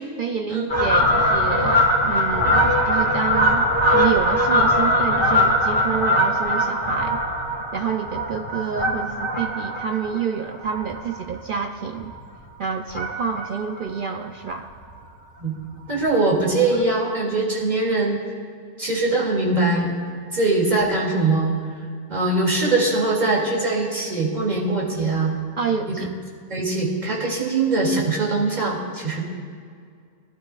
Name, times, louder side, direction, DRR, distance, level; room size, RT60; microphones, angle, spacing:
voice 1, 0.2-3.7 3.9-7.2 7.7-12.1 12.6-14.7 25.6-26.1, right 6 dB, 80° right, 4 dB, 0.4 m, -28 dB
Fowl, 0.7-11.5 11.9-12.2 12.9-13.5 13.8-13.9 14.1-14.2 14.5-14.6 14.9-15.1 16.1-16.2 16.7-16.8, equal, 20° left, 2.3 m, -21 dB
voice 2, 15.9-18.2 18.8-19.9 20.3-21.5 22.1-25.4 25.9-26.0 26.5-29.2, right 2 dB, 30° right, -4 dB, 2.7 m, -22 dB
22.0 x 12.0 x 2.4 m, 2.2 s
omnidirectional pair, 1.5 m